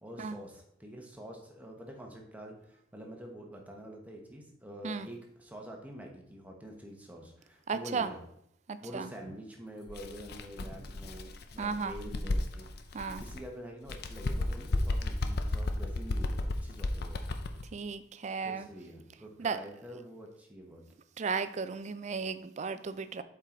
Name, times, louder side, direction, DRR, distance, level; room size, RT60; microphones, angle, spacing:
voice 1, 0.0-8.2 8.8-12.7 13.2-17.2 18.4-20.8, equal, 10° right, 0 dB, 1.1 m, -46 dB
voice 2, 7.7-8.1 8.7-9.1 11.6-11.9 12.9-13.2 17.7-18.7 19.4-19.6 21.2-23.2, right 5 dB, 40° right, 12 dB, 0.4 m, -34 dB
Bird, 9.9-13.4 13.8-17.7, left 2 dB, 60° left, 0.6 m, -34 dB
7.7 x 4.5 x 3.8 m, 0.73 s
head